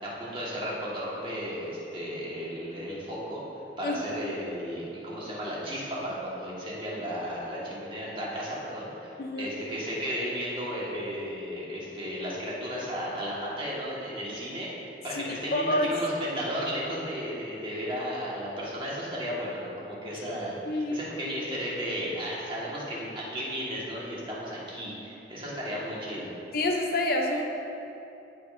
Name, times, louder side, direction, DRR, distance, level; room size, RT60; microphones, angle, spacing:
voice 1, 0.0-3.4 3.8-26.3, equal, 30° right, -6 dB, 1.7 m, -34 dB
voice 2, 3.8-4.2 9.2-9.5 15.1-15.2 15.5-15.9 20.6-21.0 26.5-27.4, left 1 dB, 55° left, 1 dB, 0.7 m, -27 dB
15.0 x 5.2 x 2.7 m, 2.8 s
head